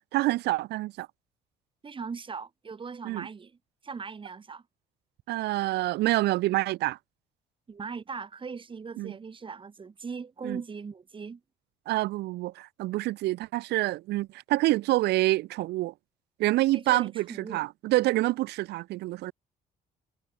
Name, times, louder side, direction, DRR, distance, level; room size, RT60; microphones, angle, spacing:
voice 1, 0.1-1.1 3.0-3.3 5.3-7.0 9.0-9.1 10.4-10.6 11.9-15.9 16.4-19.3, right 18 dB, 80° right, 1.9 m, -27 dB
voice 2, 1.8-3.6 3.8-4.6 7.7-11.4 16.7-17.7, right 5 dB, 30° right, 7.4 m, -39 dB
cardioid pair, 110°, 17 cm